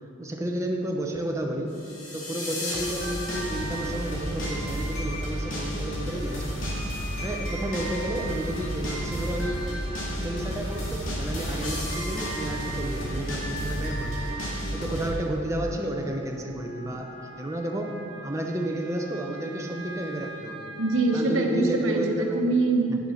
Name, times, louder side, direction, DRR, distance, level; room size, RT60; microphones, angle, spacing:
voice 1, 0.2-1.8 2.1-6.7 7.2-9.7 10.1-14.3 14.7-17.1 17.4-18.0 18.2-20.7 21.1-22.4 22.9-23.0, right 1 dB, 15° right, 1 dB, 0.8 m, -31 dB
sound 1, 1.8-15.1, equal, 70° left, 2.2 m, -31 dB
Wind instrument woodwind instrument, 15.5-21.2, right 2 dB, 90° right, 1.0 m, -45 dB
voice 2, 20.8-23.1, right 2 dB, 65° right, 2 dB, 1.1 m, -24 dB
9.7 x 6.7 x 5.7 m, 2.7 s
head